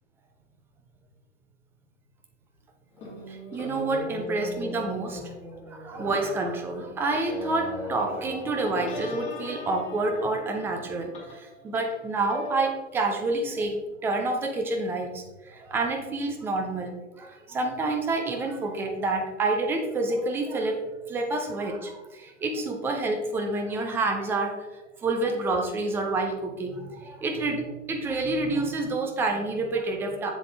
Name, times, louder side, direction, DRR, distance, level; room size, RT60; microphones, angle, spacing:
sound 1, 2.9-12.7, left 2 dB, 20° left, 2.4 m, -39 dB
voice 1, 3.3-5.3 5.7-16.9 17.2-24.7 25.0-30.3, right 2 dB, 5° right, 3 dB, 0.4 m, -28 dB
7.3 x 7.3 x 3.3 m, 1.1 s
figure-of-eight pair, 105°, 37 cm